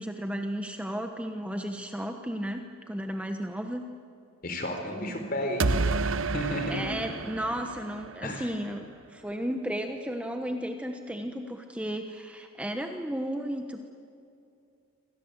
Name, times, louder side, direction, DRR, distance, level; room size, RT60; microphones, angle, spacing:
voice 1, 0.0-3.8 4.9-5.1 6.7-13.9, equal, 5° right, 4 dB, 1.1 m, -34 dB
voice 2, 4.4-5.9 6.3-6.9 8.2-8.5, left 1 dB, 45° left, 5 dB, 4.2 m, -32 dB
sound 1, 5.6-8.5, right 3 dB, 70° right, 0.9 m, -30 dB
28.0 x 25.5 x 8.2 m, 2.6 s
head